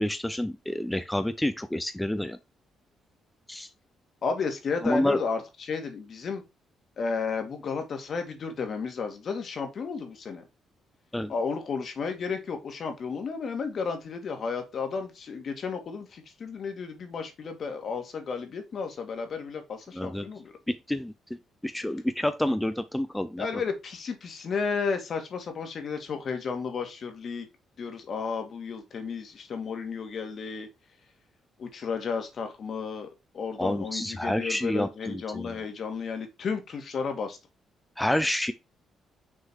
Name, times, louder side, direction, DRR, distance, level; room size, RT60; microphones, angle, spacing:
voice 1, 0.0-2.4 3.5-3.7 4.8-5.2 11.1-11.3 19.9-20.3 20.7-21.1 21.6-23.5 33.6-35.5 38.0-38.5, left 1 dB, 5° left, 0.5 m, -28 dB
voice 2, 4.2-6.4 7.0-10.4 11.3-20.5 23.4-27.5 27.8-30.7 31.6-33.1 33.3-37.4, left 5 dB, 55° left, 1.9 m, -33 dB
6.3 x 3.8 x 4.7 m
cardioid pair, 90°, 0 cm